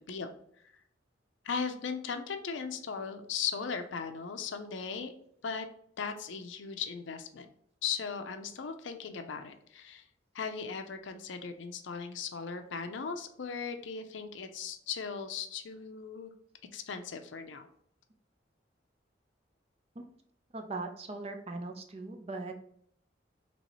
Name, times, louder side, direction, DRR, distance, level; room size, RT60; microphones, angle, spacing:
voice 1, 1.4-5.1 5.4-5.7 6.0-7.5 7.8-10.0 10.3-16.3 16.7-17.7, left 6 dB, 85° left, 7 dB, 0.5 m, -37 dB
voice 2, 20.5-22.5, right 3 dB, 35° right, 5 dB, 0.5 m, -39 dB
4.1 x 3.0 x 3.0 m, 0.67 s
head